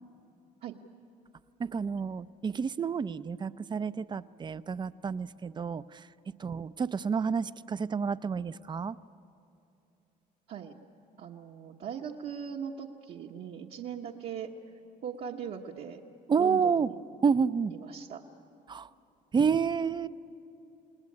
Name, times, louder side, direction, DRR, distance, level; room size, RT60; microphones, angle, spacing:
voice 1, 1.6-6.0 6.4-9.0 16.3-16.9 17.2-17.7 18.7-18.9 19.3-20.1, right 6 dB, 25° right, 15 dB, 0.5 m, -29 dB
voice 2, 11.2-14.5 15.0-16.0 16.4-16.9 17.7-18.2, right 8 dB, 65° right, -2 dB, 1.2 m, -40 dB
28.5 x 19.5 x 8.7 m, 2.8 s
cardioid pair, 110°, 17 cm